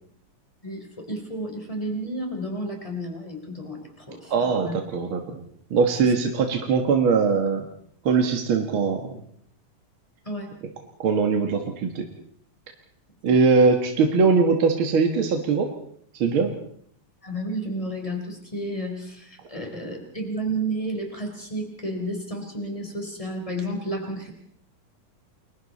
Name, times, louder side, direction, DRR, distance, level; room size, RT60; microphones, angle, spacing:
voice 1, 0.6-4.7 10.2-10.5 13.3-13.4 17.2-24.3, right 1 dB, 10° left, 2 dB, 3.7 m, -32 dB
voice 2, 4.3-5.4 5.7-7.6 8.0-9.1 11.0-12.0 13.2-15.7 16.2-16.5, right 5 dB, 50° right, 4 dB, 1.8 m, -21 dB
29.5 x 22.5 x 4.2 m, 0.66 s
omnidirectional pair, 3.9 m